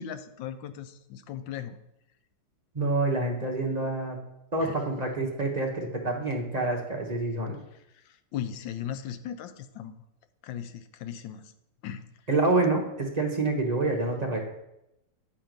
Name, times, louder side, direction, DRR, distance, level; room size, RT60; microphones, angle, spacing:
voice 1, 0.0-1.8 4.6-4.7 8.3-10.0 10.4-11.5 11.8-12.0, left 9 dB, 90° left, 9 dB, 1.4 m, -37 dB
voice 2, 2.7-4.2 4.5-7.6 12.3-14.4, right 2 dB, 30° right, 0 dB, 0.9 m, -27 dB
9.9 x 4.5 x 5.2 m, 0.86 s
omnidirectional pair, 2.0 m